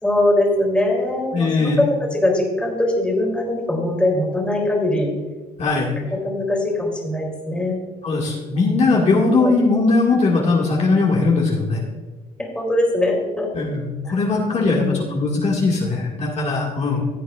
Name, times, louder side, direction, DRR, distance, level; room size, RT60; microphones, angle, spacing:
voice 1, 0.0-5.1 6.0-7.8 9.0-9.5 12.4-13.5 14.1-14.2 14.6-15.1, left 1 dB, 5° left, -1 dB, 3.1 m, -22 dB
voice 2, 1.3-1.8 5.6-5.9 8.0-11.8 13.5-17.0, left 3 dB, 40° left, -3 dB, 2.0 m, -19 dB
15.0 x 8.9 x 2.5 m, 1.3 s
cardioid pair, 110°, 17 cm